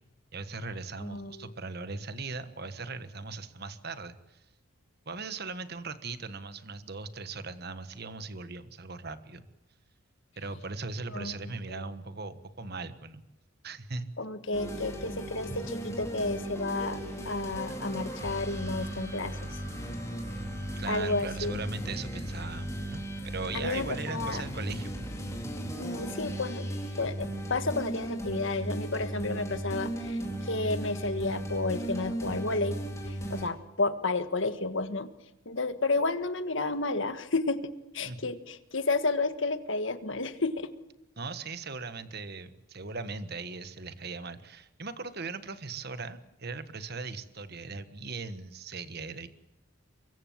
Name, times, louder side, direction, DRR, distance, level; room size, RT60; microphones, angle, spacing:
voice 1, 0.3-4.4 5.1-9.5 10.4-13.2 13.6-14.1 20.8-24.9 38.0-38.2 41.2-49.3, right 3 dB, 50° right, 12 dB, 1.4 m, -39 dB
voice 2, 1.0-1.5 11.1-11.8 14.2-19.6 20.9-21.6 23.5-24.4 25.8-26.7 27.0-32.7 33.0-35.1 35.4-37.6 37.9-40.7, left 3 dB, 60° left, 10 dB, 1.7 m, -31 dB
sound 1, 14.5-33.5, right 1 dB, 15° left, 4.1 m, -36 dB
sound 2, 16.3-23.6, right 2 dB, 35° right, 6.4 m, -54 dB
24.5 x 22.5 x 7.5 m, 1.0 s
head